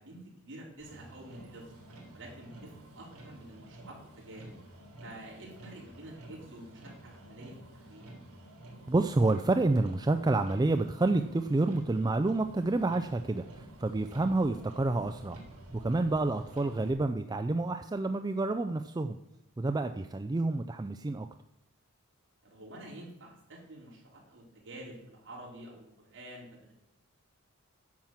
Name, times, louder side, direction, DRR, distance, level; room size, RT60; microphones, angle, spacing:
voice 1, 0.0-1.7 2.1-4.5 5.0-8.1 14.1-14.3 16.1-16.2 22.4-26.7, right 1 dB, 55° right, -3 dB, 3.8 m, -49 dB
Motor vehicle (road), 0.8-16.9, right 1 dB, 75° right, 3.7 m, -51 dB
voice 2, 8.9-15.4 15.7-19.2 19.6-21.3, right 2 dB, 15° right, 7 dB, 0.3 m, -29 dB
10.5 x 5.9 x 7.4 m, 0.80 s
head